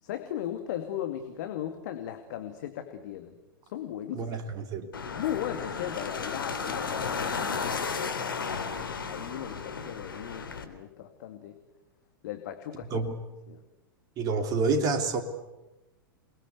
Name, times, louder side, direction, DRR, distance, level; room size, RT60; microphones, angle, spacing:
voice 1, 0.0-3.4 3.6-4.3 5.1-11.6 12.2-13.1 13.5-13.6, left 11 dB, 50° left, 6 dB, 2.5 m, -37 dB
voice 2, 4.1-4.9 12.9-13.2 14.2-15.2, right 4 dB, 30° right, 6 dB, 3.0 m, -28 dB
sound 1, 4.9-10.6, left 5 dB, 70° left, 3.2 m, -34 dB
28.5 x 21.0 x 8.2 m, 1.0 s
figure-of-eight pair, 100°, 12 cm